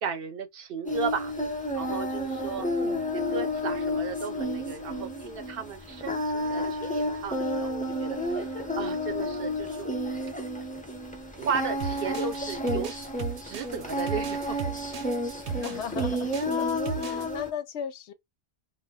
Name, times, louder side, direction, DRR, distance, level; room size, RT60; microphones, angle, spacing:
voice 1, 0.0-1.3 1.7-2.7 3.1-9.9 11.3-13.0 13.4-14.6, right 6 dB, 65° right, 0.8 m, -35 dB
Singing, 0.8-17.5, left 1 dB, 15° left, 0.3 m, -31 dB
voice 2, 2.6-3.1 15.4-16.7 17.0-18.1, left 8 dB, 90° left, 0.9 m, -37 dB
sound 1, 11.8-17.3, right 7 dB, 90° right, 0.9 m, -36 dB
2.3 x 2.0 x 3.4 m
omnidirectional pair, 1.1 m